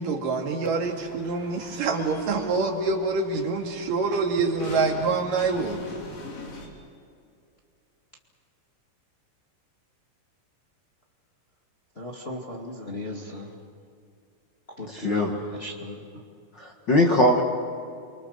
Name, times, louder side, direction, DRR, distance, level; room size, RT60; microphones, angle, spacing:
voice 1, 0.0-5.8, right 4 dB, 75° right, 1 dB, 3.9 m, -26 dB
sound 1, 0.8-6.7, left 2 dB, 80° left, 5.2 m, -43 dB
voice 2, 12.0-13.5 14.8-16.0, left 1 dB, 20° left, -1 dB, 1.8 m, -36 dB
voice 3, 14.9-15.3 16.6-17.4, left 1 dB, 40° left, 1 dB, 1.7 m, -21 dB
30.0 x 24.5 x 6.6 m, 2.3 s
omnidirectional pair, 4.0 m